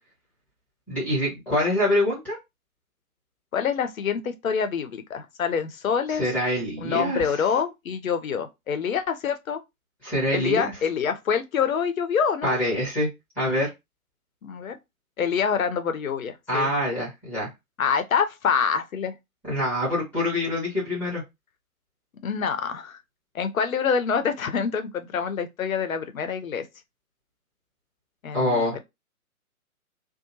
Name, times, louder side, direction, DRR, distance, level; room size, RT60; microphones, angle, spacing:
voice 1, 0.9-2.4 6.1-7.2 10.0-10.7 12.4-13.1 13.4-13.7 16.5-17.5 19.4-21.2 28.3-28.7, left 1 dB, 5° left, 0.9 m, -25 dB
voice 2, 3.5-6.2 6.8-9.6 10.3-12.6 14.4-14.8 15.2-16.7 17.8-19.1 22.2-23.0 23.3-26.6 28.2-28.8, left 6 dB, 65° left, 0.6 m, -26 dB
2.7 x 2.1 x 2.8 m
figure-of-eight pair, 130°, 44 cm